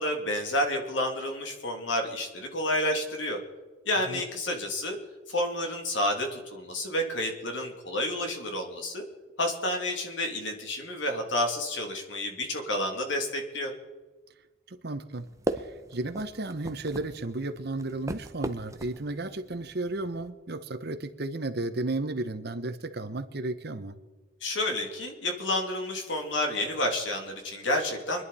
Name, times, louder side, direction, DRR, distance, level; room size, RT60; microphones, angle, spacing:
voice 1, 0.0-3.4 3.8-5.0 5.3-9.0 9.4-13.7 24.4-28.2, left 1 dB, 75° left, 2 dB, 2.9 m, -30 dB
voice 2, 14.7-15.3 15.6-24.0, right 2 dB, 55° right, 10 dB, 1.0 m, -33 dB
sound 1, 15.1-20.3, right 1 dB, 15° right, 0.7 m, -38 dB
25.0 x 11.0 x 4.3 m, 1.3 s
head